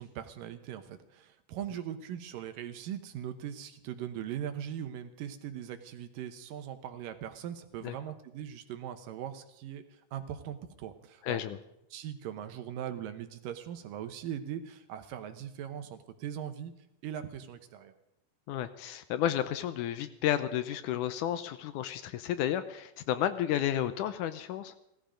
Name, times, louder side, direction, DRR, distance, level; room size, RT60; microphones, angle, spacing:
voice 1, 0.0-9.8 10.1-11.4 11.9-16.7 17.0-17.9, right 10 dB, 80° right, 8 dB, 2.7 m, -40 dB
voice 2, 11.2-11.6 18.5-24.7, left 11 dB, 75° left, 11 dB, 2.0 m, -32 dB
17.0 x 14.0 x 5.1 m, 0.83 s
omnidirectional pair, 3.9 m